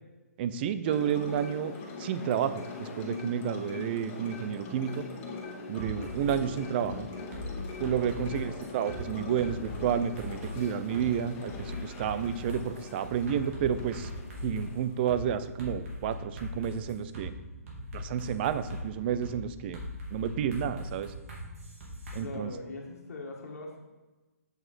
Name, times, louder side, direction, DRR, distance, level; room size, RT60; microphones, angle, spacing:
voice 1, 0.4-1.7 2.0-5.0 5.7-7.1 7.8-14.1 14.4-17.3 17.9-19.8 20.1-21.1 22.1-22.5, right 9 dB, 40° right, 13 dB, 0.6 m, -30 dB
sound 1, 0.8-15.6, left 4 dB, 25° left, 1.6 m, -42 dB
sound 2, 5.8-6.4 6.8-6.9 7.3-9.0 9.4-10.6 10.9-11.1 11.4-14.7 15.1-15.2 15.6-17.3 17.7-18.8 19.2-19.3 19.7-22.2, left 2 dB, 55° right, 2.8 m, -40 dB
sound 3, 16.3-21.7, right 1 dB, 10° right, 2.0 m, -52 dB
voice 2, 22.2-23.8, left 2 dB, 65° left, 0 dB, 1.7 m, -41 dB
8.2 x 6.4 x 4.3 m, 1.2 s
hypercardioid pair, 135°, 9 cm